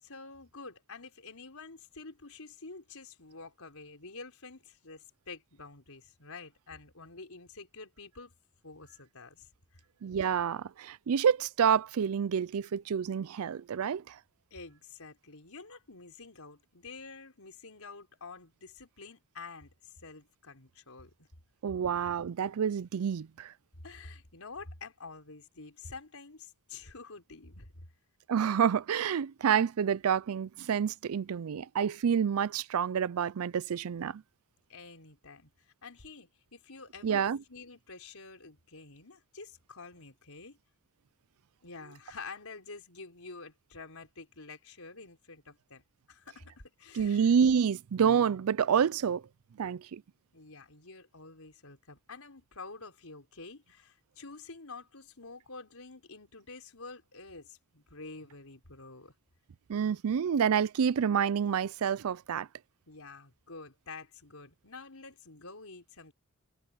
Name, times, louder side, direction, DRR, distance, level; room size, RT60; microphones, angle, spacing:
voice 1, 0.0-8.3 8.6-9.5 14.5-21.3 23.8-27.9 34.7-40.6 41.6-45.8 46.1-47.3 50.3-59.1 62.9-66.1, left 4 dB, 80° left, 4.5 m, -48 dB
voice 2, 10.0-14.2 21.6-23.5 28.3-34.2 37.0-37.4 46.9-49.2 49.6-50.0 59.7-62.5, right 7 dB, 80° right, 0.4 m, -28 dB
head